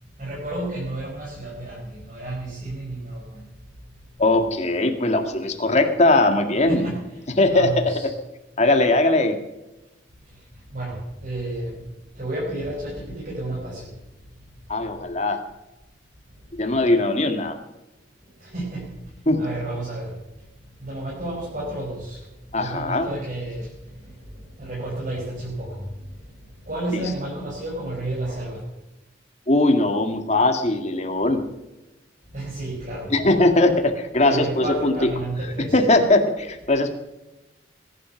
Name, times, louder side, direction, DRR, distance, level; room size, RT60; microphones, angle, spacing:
voice 1, 0.2-3.5 6.7-7.0 7.4-8.1 10.7-11.8 12.1-13.9 18.4-18.9 19.4-20.1 20.8-22.2 22.6-23.7 24.0-24.1 24.6-25.9 26.7-28.6 32.3-33.1 34.2-35.8, right 1 dB, 45° right, -5 dB, 5.3 m, -31 dB
voice 2, 4.2-6.9 7.4-8.0 8.6-9.4 14.7-15.4 16.6-17.6 19.3-19.4 22.5-23.1 26.9-27.0 29.5-31.5 33.1-35.1 35.6-36.9, left 2 dB, 35° left, 5 dB, 2.1 m, -20 dB
21.0 x 11.0 x 5.9 m, 1.0 s
head